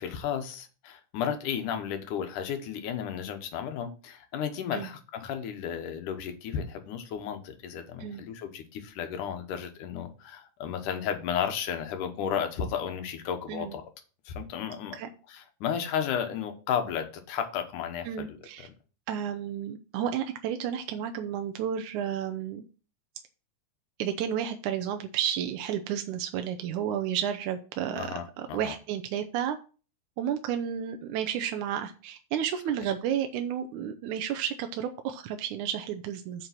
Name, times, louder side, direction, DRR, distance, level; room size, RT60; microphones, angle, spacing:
voice 1, 0.0-13.8 14.3-15.0 15.3-18.7 28.0-28.7, left 8 dB, 80° left, 2.7 m, -33 dB
voice 2, 18.1-18.7 19.1-22.6 24.0-29.6 30.2-36.5, right 9 dB, 75° right, 2.1 m, -32 dB
8.3 x 5.3 x 5.9 m
omnidirectional pair, 3.6 m